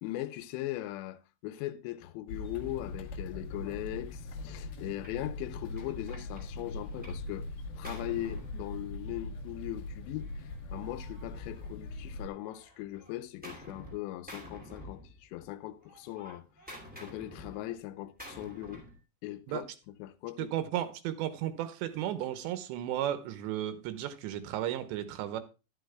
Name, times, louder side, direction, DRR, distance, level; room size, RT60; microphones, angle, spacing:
voice 1, 0.0-7.5 7.8-18.9 19.2-20.5, left 15 dB, 85° left, 2.9 m, -40 dB
sound 1, 2.3-12.3, left 2 dB, 70° left, 2.8 m, -41 dB
Gunshot gunfire, 5.0-5.2 5.8-7.3 7.5-9.3 10.2-12.0 12.4-14.0 14.3-15.5 15.8-19.0, equal, 5° right, 1.0 m, -50 dB
voice 2, 20.4-25.4, right 12 dB, 85° right, 3.1 m, -34 dB
11.5 x 10.5 x 2.3 m
omnidirectional pair, 5.1 m